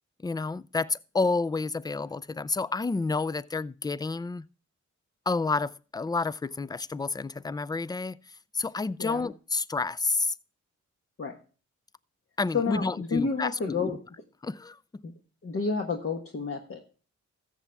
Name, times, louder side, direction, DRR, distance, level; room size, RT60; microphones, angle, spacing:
voice 1, 0.2-4.4 5.3-8.2 8.5-10.3 12.4-13.9 14.4-14.8, left 3 dB, 15° left, 0.3 m, -30 dB
voice 2, 9.0-9.3 11.2-11.4 12.5-14.0 15.0-15.1 15.4-16.8, left 4 dB, 45° left, 1.3 m, -30 dB
14.0 x 7.1 x 3.4 m
cardioid pair, 60°, 30 cm